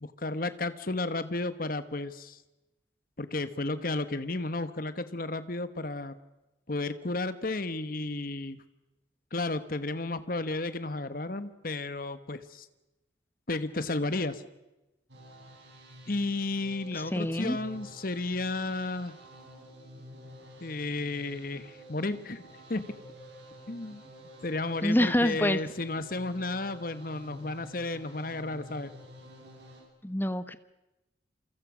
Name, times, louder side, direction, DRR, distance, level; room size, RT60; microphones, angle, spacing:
voice 1, 0.0-2.4 3.2-6.2 6.7-8.6 9.3-12.7 13.5-14.4 16.1-19.2 20.6-22.4 22.7-22.8 23.7-24.0 24.4-28.9, left 2 dB, 50° left, 12 dB, 1.3 m, -33 dB
sound 1, 15.1-29.8, equal, 75° right, 8.0 m, -50 dB
voice 2, 16.9-17.6 24.8-25.6 30.0-30.6, left 1 dB, 10° left, 13 dB, 1.0 m, -26 dB
28.0 x 25.0 x 6.3 m, 0.99 s
head